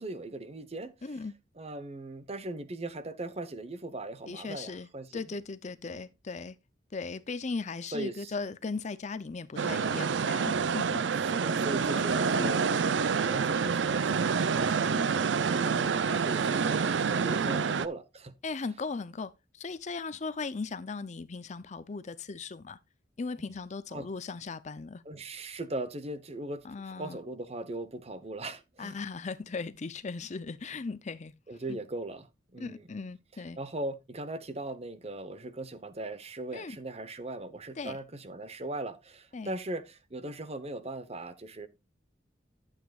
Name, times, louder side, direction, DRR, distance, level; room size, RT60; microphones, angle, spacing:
voice 1, 0.0-1.2 1.6-5.2 5.8-6.0 7.9-8.3 11.2-12.8 13.1-18.4 23.9-24.1 25.0-26.7 27.0-29.0 31.5-32.9 33.6-41.7, right 2 dB, 35° right, 1.0 m, -39 dB
voice 2, 1.0-1.3 4.3-6.6 6.9-11.0 11.9-12.6 17.5-17.6 18.4-22.8 23.2-25.0 26.6-27.2 28.8-31.3 31.7-31.8 32.6-33.6 36.5-36.8 37.8-38.0 39.3-39.5, left 4 dB, 40° left, 0.5 m, -38 dB
sound 1, 9.6-17.9, right 5 dB, 85° right, 0.5 m, -27 dB
12.5 x 8.1 x 2.4 m
head